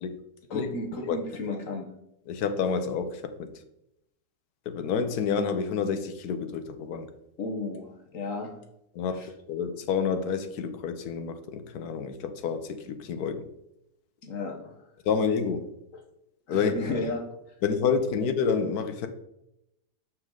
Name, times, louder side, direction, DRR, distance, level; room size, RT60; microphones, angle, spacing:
voice 1, 0.5-1.9 7.4-8.6 9.2-9.3 14.2-14.8 16.5-17.2, left 2 dB, 55° left, 1.5 m, -33 dB
voice 2, 2.3-3.5 4.7-7.1 8.9-9.2 9.5-13.5 15.0-15.7 16.5-17.0 17.6-19.1, left 6 dB, 70° left, 1.3 m, -28 dB
6.9 x 6.0 x 3.8 m
omnidirectional pair, 1.8 m